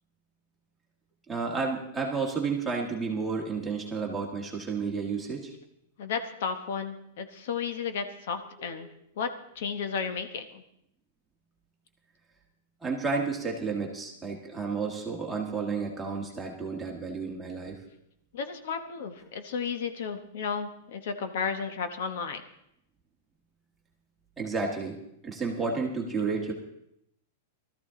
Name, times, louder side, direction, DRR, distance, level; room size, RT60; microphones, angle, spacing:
voice 1, 1.3-5.5 8.6-8.8 12.8-17.8 24.4-26.5, right 4 dB, 5° right, -1 dB, 1.5 m, -31 dB
voice 2, 6.0-8.9 9.2-9.3 9.5-10.6 18.3-22.4, left 6 dB, 55° left, 8 dB, 0.9 m, -33 dB
17.5 x 13.5 x 3.7 m, 0.77 s
supercardioid pair, 175°, 0 cm